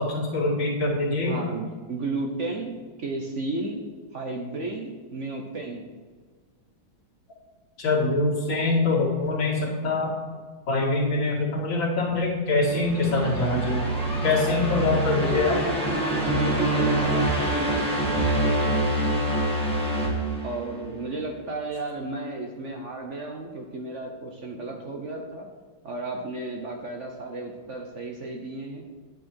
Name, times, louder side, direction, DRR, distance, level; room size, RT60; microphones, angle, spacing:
voice 1, 0.0-1.3 7.8-10.1 10.7-13.8 14.2-15.6, left 3 dB, 80° left, -4 dB, 3.0 m, -24 dB
voice 2, 1.2-2.7 3.0-3.8 4.1-5.9 14.4-14.8 16.2-18.5 20.4-25.5 25.8-28.8, right 2 dB, 50° right, 2 dB, 1.1 m, -33 dB
sound 1, 12.7-21.0, right 1 dB, 5° left, 1.9 m, -25 dB
9.7 x 7.7 x 4.4 m, 1.5 s
omnidirectional pair, 2.0 m